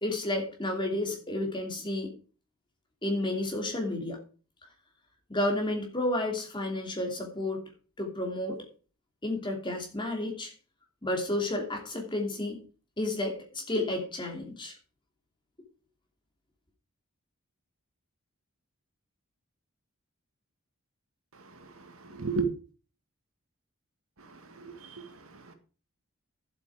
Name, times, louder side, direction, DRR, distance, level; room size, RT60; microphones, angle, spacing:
voice 1, 0.0-2.1 3.0-4.2 5.3-7.6 8.0-8.6 9.2-10.5 11.0-12.6 13.0-14.7, left 1 dB, 20° left, 1 dB, 2.9 m, -31 dB
voice 2, 21.5-22.5 24.2-25.5, right 4 dB, 75° right, 8 dB, 1.8 m, -36 dB
11.0 x 8.1 x 4.9 m, 0.37 s
head